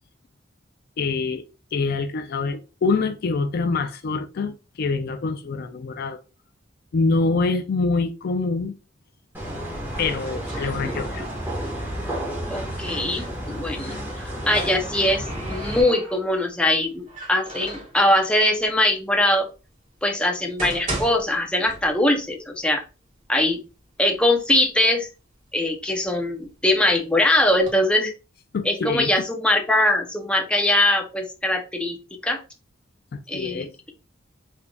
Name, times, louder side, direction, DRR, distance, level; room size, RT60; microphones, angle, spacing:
voice 1, 1.0-1.4 1.7-6.2 6.9-8.7 10.0-11.3 28.5-29.1 33.1-33.7, left 3 dB, 55° left, 0.4 m, -25 dB
sound 1, 9.3-15.8, equal, 10° right, 1.3 m, -31 dB
sound 2, 9.9-11.6 11.9-13.3 14.5-16.5 17.1-18.0 18.8-18.9 19.5-19.6 20.3-22.2 22.6-22.7 23.4-23.5 23.8-24.5 25.0-26.7 27.3-27.7, right 1 dB, 40° right, 1.8 m, -36 dB
voice 2, 12.5-14.0 14.5-19.5 20.0-22.8 23.3-23.6 24.0-25.1 25.5-28.1 28.6-32.0 32.2-32.4 33.3-33.9, left 1 dB, 5° left, 0.6 m, -22 dB
3.7 x 3.3 x 2.3 m
head